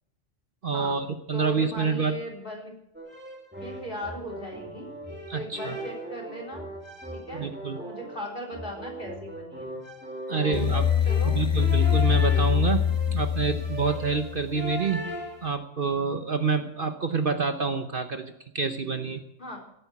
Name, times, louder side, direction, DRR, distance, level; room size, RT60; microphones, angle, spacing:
voice 1, 0.6-2.1 5.3-5.8 7.3-7.8 10.3-10.9 11.3-15.1 15.4-19.2, right 5 dB, 45° right, 7 dB, 1.0 m, -27 dB
voice 2, 1.3-2.7 3.6-4.9 5.3-6.7 7.1-9.7 10.3-10.7 11.0-11.4 19.4-19.6, equal, 40° left, 0 dB, 4.1 m, -38 dB
sound 1, 2.9-15.5, equal, 10° right, 2.2 m, -39 dB
sound 2, 10.5-14.6, left 9 dB, 25° left, 0.8 m, -24 dB
17.5 x 8.8 x 7.2 m, 0.79 s
omnidirectional pair, 1.3 m